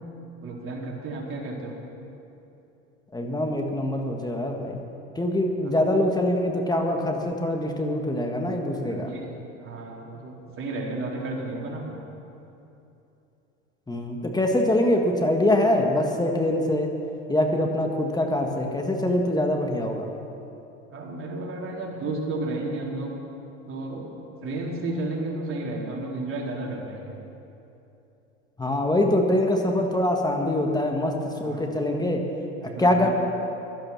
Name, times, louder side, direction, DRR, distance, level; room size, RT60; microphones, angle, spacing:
voice 1, 0.4-1.7 8.9-9.3 9.6-12.0 20.9-23.1 23.7-24.1 24.4-27.1 31.4-31.7 32.6-33.1, right 2 dB, 35° right, -3 dB, 4.0 m, -32 dB
voice 2, 3.1-4.8 5.1-9.1 13.9-16.9 17.3-20.1 28.6-32.2 32.6-33.1, left 1 dB, 10° left, 2 dB, 1.6 m, -24 dB
15.5 x 12.5 x 5.9 m, 2.8 s
hypercardioid pair, 90°, 37 cm